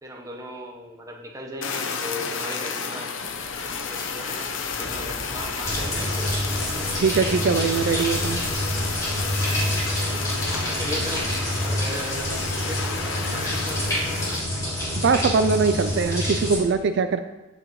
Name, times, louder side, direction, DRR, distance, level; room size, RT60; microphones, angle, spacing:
voice 1, 0.0-3.1 3.9-6.6 10.5-11.3 11.6-14.6, equal, 15° right, 0 dB, 1.0 m, -37 dB
Fire, 1.6-14.4, left 5 dB, 70° left, 0.7 m, -31 dB
sound 1, 3.1-10.0, left 1 dB, 45° left, 1.5 m, -44 dB
sound 2, 5.6-16.6, equal, 15° left, 2.9 m, -27 dB
voice 2, 7.0-8.4 15.0-17.2, right 5 dB, 55° right, 9 dB, 0.4 m, -22 dB
15.0 x 5.0 x 3.1 m, 1.0 s
head